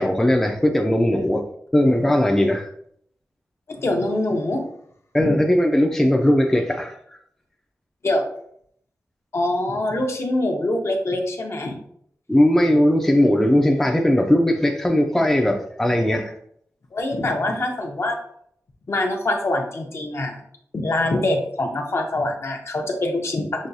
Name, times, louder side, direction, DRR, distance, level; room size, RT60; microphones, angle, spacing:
voice 1, 0.0-2.7 5.1-6.9 12.3-16.3, left 1 dB, 5° left, 2 dB, 0.4 m, -19 dB
voice 2, 3.7-4.6 5.2-5.4 8.0-8.2 9.3-11.8 16.9-18.2 18.9-20.4 20.7-23.7, left 1 dB, 50° left, 3 dB, 0.7 m, -24 dB
6.0 x 2.3 x 2.6 m, 0.68 s
wide cardioid pair, 125°, 6 cm